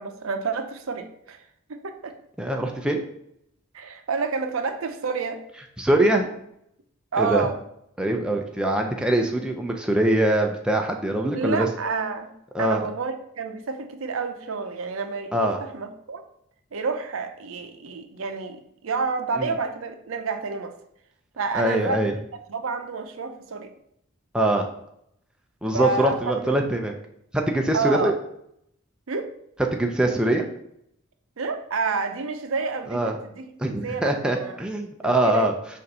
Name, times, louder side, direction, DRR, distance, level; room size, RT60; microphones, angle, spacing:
voice 1, 0.0-2.1 3.7-5.4 7.1-7.6 11.3-12.3 12.6-16.2 16.7-20.7 21.4-22.0 22.5-23.7 25.7-26.6 27.7-28.1 29.1-29.4 31.4-34.6 35.2-35.5, right 4 dB, 75° right, 8 dB, 0.6 m, -29 dB
voice 2, 2.4-3.0 5.8-6.3 7.2-7.5 8.0-11.7 12.5-12.8 15.3-15.6 19.4-19.5 21.5-22.1 24.3-24.7 25.6-26.9 27.3-28.1 29.7-30.5 32.9-33.1 33.6-35.5, right 1 dB, 5° right, 2 dB, 0.4 m, -23 dB
6.7 x 2.6 x 5.3 m, 0.75 s
head